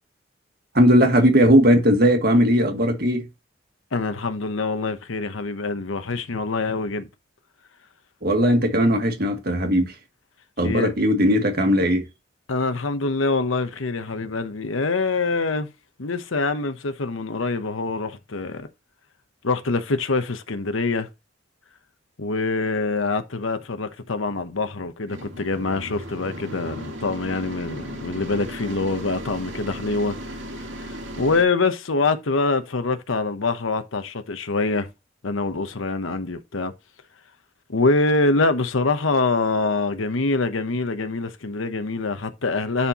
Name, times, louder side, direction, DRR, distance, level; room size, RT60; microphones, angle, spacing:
voice 1, 0.7-3.3 8.2-9.9 10.6-12.0, equal, 50° right, 1.8 m, -18 dB
voice 2, 3.9-7.1 10.6-10.9 12.5-15.7 16.0-18.7 19.4-21.1 22.2-30.2 30.6-34.9 35.2-36.7 37.7-42.9, left 3 dB, 85° left, 0.9 m, -25 dB
sound 1, 25.1-31.4, equal, 70° right, 2.1 m, -36 dB
10.5 x 4.4 x 3.0 m
head